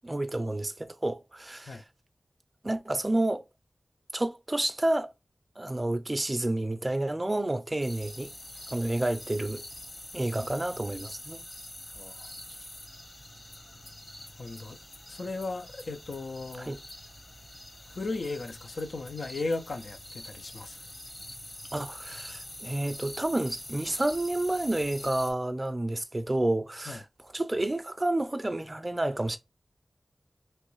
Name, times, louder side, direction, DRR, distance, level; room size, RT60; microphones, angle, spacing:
voice 1, 0.0-1.8 2.6-3.4 4.1-5.1 5.6-8.3 8.7-9.6 10.1-11.4 16.6-16.8 21.7-27.0 27.3-29.4, right 1 dB, 30° right, 0.4 m, -30 dB
sound 1, 7.8-25.3, left 1 dB, 55° left, 1.1 m, -45 dB
voice 2, 11.9-12.3 14.4-14.8 15.1-16.8 17.9-20.8 26.9-27.0, left 3 dB, 85° left, 0.4 m, -36 dB
3.0 x 2.6 x 3.0 m
wide cardioid pair, 60°, 0 cm